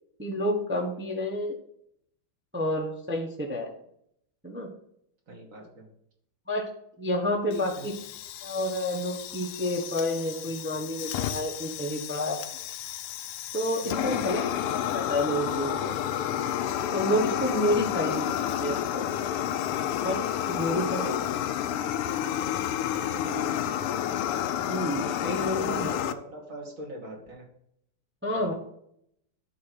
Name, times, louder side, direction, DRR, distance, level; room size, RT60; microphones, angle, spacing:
voice 1, 0.2-1.5 2.5-3.7 4.4-4.7 6.5-6.7 7.0-7.9 8.4-12.4 13.5-14.4 14.7-15.9 16.9-18.2 18.6-19.1 20.0-21.2 23.2-23.5 24.7-25.9 28.2-28.5, left 1 dB, 10° right, 0 dB, 0.8 m, -29 dB
voice 2, 5.3-5.9 7.4-7.9 13.8-14.3 17.6-17.8 18.2-18.3 20.7-21.2 22.9-23.6 25.4-27.5 28.3-28.5, right 1 dB, 40° right, 0 dB, 2.3 m, -42 dB
Fire, 7.5-26.1, left 10 dB, 85° left, 1.5 m, -31 dB
11.0 x 3.8 x 6.3 m, 0.73 s
omnidirectional pair, 2.4 m